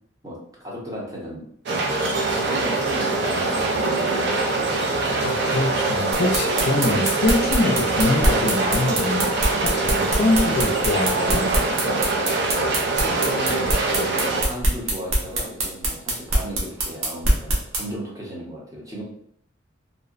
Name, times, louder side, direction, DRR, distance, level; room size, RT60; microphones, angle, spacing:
voice 1, 0.2-1.4 2.3-4.2 13.0-13.7 14.0-19.0, equal, 15° right, -4 dB, 0.7 m, -35 dB
sound 1, 1.7-14.4, right 3 dB, 60° right, 0.4 m, -23 dB
voice 2, 5.2-9.3 9.6-11.5, left 2 dB, 50° left, 2 dB, 0.4 m, -24 dB
sound 2, 6.1-17.8, right 1 dB, 90° right, 0.7 m, -22 dB
2.7 x 2.0 x 2.4 m, 0.66 s
head